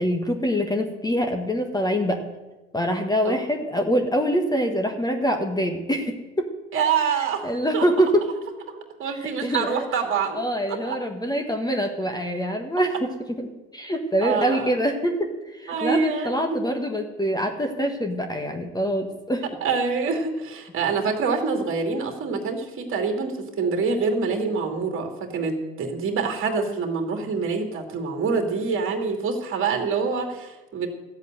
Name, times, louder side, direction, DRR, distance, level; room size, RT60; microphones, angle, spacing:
voice 1, 0.0-2.2 2.7-6.5 7.4-8.1 9.2-9.8 10.3-13.1 13.7-19.4, equal, 10° left, 4 dB, 1.4 m, -25 dB
voice 2, 6.7-7.5 7.7-7.8 9.0-10.4 10.7-11.0 14.2-14.7 15.7-16.6 19.6-30.9, right 5 dB, 30° right, 4 dB, 2.5 m, -26 dB
14.0 x 8.2 x 7.8 m, 1.1 s
figure-of-eight pair, 80°, 41 cm